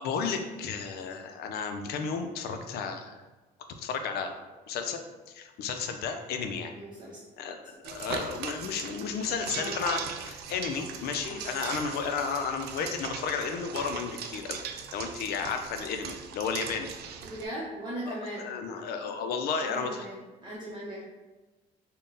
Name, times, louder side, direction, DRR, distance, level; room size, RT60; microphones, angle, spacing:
voice 1, 0.0-3.2 3.8-4.4 4.7-5.0 5.3-6.7 7.4-16.9 18.1-20.1, left 5 dB, 70° left, 6 dB, 0.5 m, -33 dB
voice 2, 6.7-7.2 9.5-9.9 17.2-18.5 19.6-21.1, right 1 dB, 25° right, -7 dB, 0.7 m, -38 dB
sound 1, 7.8-17.5, right 7 dB, 75° right, 0.4 m, -39 dB
3.6 x 2.2 x 3.9 m, 1.2 s
cardioid pair, 110°, 17 cm